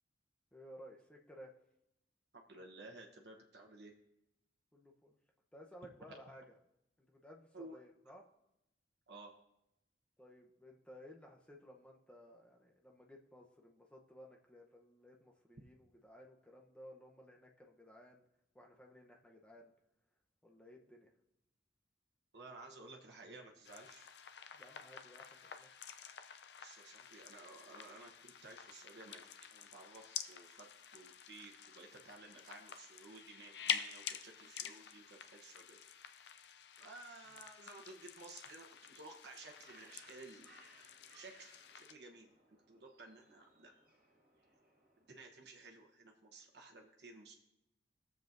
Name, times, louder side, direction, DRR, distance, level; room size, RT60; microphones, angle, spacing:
voice 1, 0.5-1.5 4.7-5.2 5.5-6.5 7.1-8.2 10.2-18.2 18.5-19.7 20.4-21.1 24.5-25.7, equal, 5° left, 0 dB, 0.8 m, -57 dB
voice 2, 2.3-3.9 6.1-6.2 7.5-7.8 9.1-9.3 22.3-24.1 26.6-35.8 36.2-36.3 36.8-40.5 41.1-43.7 45.1-47.3, right 2 dB, 75° right, 1 dB, 1.0 m, -55 dB
sound 1, 23.6-41.9, left 9 dB, 75° left, 0.5 m, -48 dB
Bird, 39.1-45.2, right 2 dB, 50° right, 2.2 m, -66 dB
18.5 x 7.4 x 2.6 m, 0.88 s
head